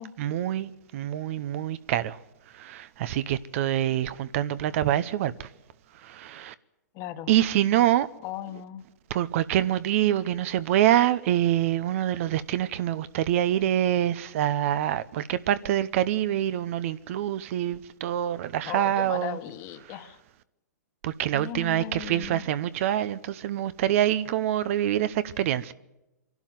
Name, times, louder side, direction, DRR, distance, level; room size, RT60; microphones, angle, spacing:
voice 1, 0.2-2.2 2.5-5.5 6.0-6.5 7.3-8.1 9.1-19.4 21.0-25.7, right 12 dB, 50° right, 0.8 m, -25 dB
voice 2, 6.9-7.3 8.2-8.8 18.6-20.2 21.3-22.5, left 12 dB, 35° left, 1.4 m, -37 dB
25.0 x 12.0 x 9.3 m
hypercardioid pair, 140°, 9 cm